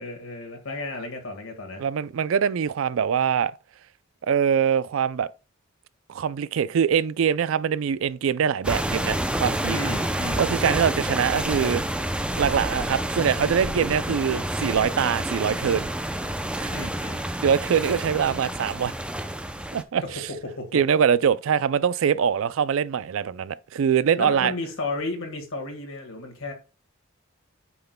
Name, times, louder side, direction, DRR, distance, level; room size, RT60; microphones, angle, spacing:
voice 1, 0.0-1.8 9.7-10.5 16.7-17.2 20.0-20.8 24.2-26.5, left 2 dB, 85° left, 1.6 m, -33 dB
voice 2, 1.8-3.5 4.2-5.3 6.1-9.8 10.4-11.8 12.4-15.9 16.6-16.7 17.4-18.9 19.7-20.3 20.7-24.5, right 7 dB, 65° right, 0.4 m, -23 dB
sound 1, 8.6-19.8, right 1 dB, 5° right, 0.5 m, -28 dB
8.6 x 5.9 x 2.2 m
head